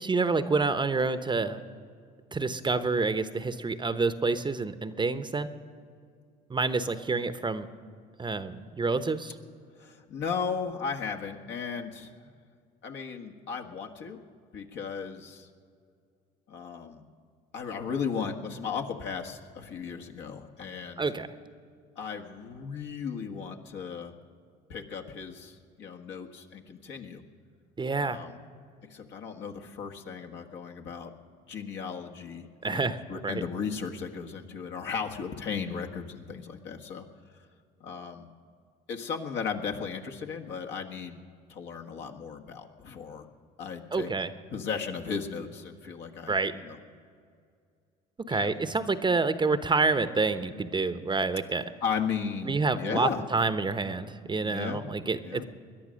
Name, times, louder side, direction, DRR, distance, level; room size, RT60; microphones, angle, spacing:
voice 1, 0.0-1.6 2.3-5.5 6.5-7.7 8.2-9.3 21.0-21.3 27.8-28.2 32.6-33.0 33.2-33.4 43.9-44.3 46.3-46.5 48.2-51.6 52.5-55.4, right 3 dB, 25° right, 12 dB, 0.9 m, -28 dB
voice 2, 9.8-12.1 12.8-14.2 14.5-15.5 16.5-17.0 17.5-21.0 21.9-24.1 24.7-27.2 28.0-28.4 28.9-31.1 31.5-37.0 37.8-38.3 38.9-41.2 41.5-43.3 43.6-44.1 44.5-46.8 48.3-48.7 51.8-53.2 54.4-54.8 55.2-55.4, left 6 dB, 65° left, 3 dB, 1.5 m, -36 dB
21.5 x 10.5 x 6.4 m, 2.2 s
hypercardioid pair, 60°, 20 cm